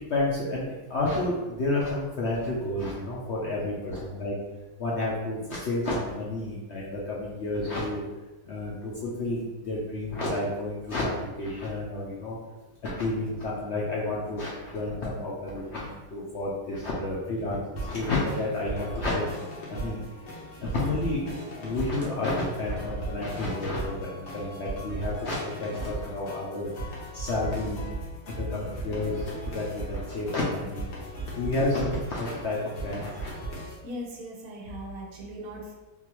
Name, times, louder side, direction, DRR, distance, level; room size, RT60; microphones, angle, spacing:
voice 1, 0.0-4.3 4.8-8.0 8.5-12.4 12.8-20.0 20.6-26.7 27.1-27.8 28.3-30.8 31.4-32.6 32.8-33.3, left 2 dB, 60° left, -5 dB, 0.7 m, -30 dB
sound 1, 17.8-33.8, right 2 dB, 85° left, 1.4 m, -38 dB
voice 2, 33.8-35.8, equal, 70° right, -2 dB, 1.0 m, -39 dB
3.6 x 2.5 x 2.9 m, 1.2 s
omnidirectional pair, 1.7 m